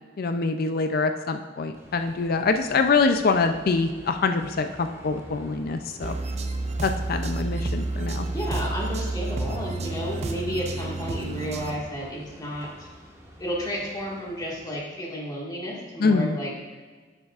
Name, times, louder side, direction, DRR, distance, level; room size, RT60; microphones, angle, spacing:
voice 1, 0.2-6.1 6.8-8.3 16.0-16.4, left 4 dB, 55° left, 7 dB, 0.4 m, -24 dB
Bus, 1.7-14.8, equal, 15° right, 1.4 m, -47 dB
sound 1, 6.0-11.8, right 2 dB, 40° right, 0.5 m, -30 dB
voice 2, 8.3-12.9 13.4-16.5, equal, 20° left, -3 dB, 1.8 m, -32 dB
10.5 x 8.0 x 2.4 m, 1.4 s
head